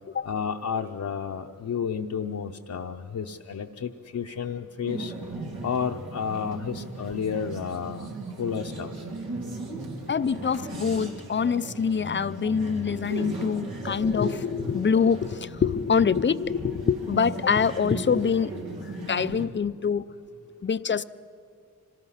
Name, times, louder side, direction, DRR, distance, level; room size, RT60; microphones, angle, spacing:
voice 1, 0.2-5.1 5.6-8.1 8.4-8.9, left 7 dB, 55° left, 1 dB, 0.7 m, -31 dB
sound 1, 4.9-19.5, right 3 dB, 90° right, 2.7 m, -37 dB
voice 2, 10.1-18.5 18.8-20.1 20.6-21.0, left 6 dB, 35° left, 15 dB, 0.4 m, -25 dB
26.0 x 19.0 x 5.7 m, 2.3 s
wide cardioid pair, 125°, 36 cm